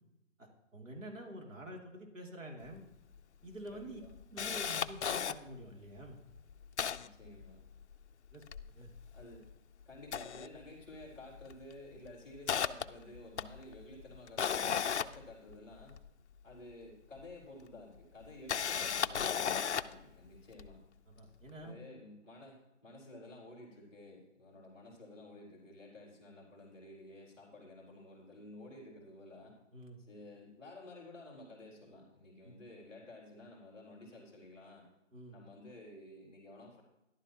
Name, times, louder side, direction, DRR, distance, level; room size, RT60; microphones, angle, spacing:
voice 1, 0.4-2.9 3.4-4.0 4.3-6.2 8.3-8.4 8.7-8.9 21.1-21.8 29.7-30.0 32.4-32.5 35.1-35.4, right 1 dB, 85° right, 1 dB, 2.8 m, -48 dB
Camera, 2.7-2.8 3.1-3.2 3.7-5.3 6.0-6.1 6.3-8.0 8.3-9.5 9.9-11.1 11.4-11.6 12.1-16.1 17.2-17.3 18.2-20.0 20.6-20.7, left 7 dB, 65° left, 0.5 m, -36 dB
voice 2, 3.7-4.1 7.0-7.6 9.1-9.4 9.8-16.0 16.4-20.8 21.6-29.5 30.1-34.8 35.3-36.8, left 1 dB, ahead, -5 dB, 3.1 m, -52 dB
13.5 x 11.5 x 2.9 m, 0.93 s
hypercardioid pair, 175°, 38 cm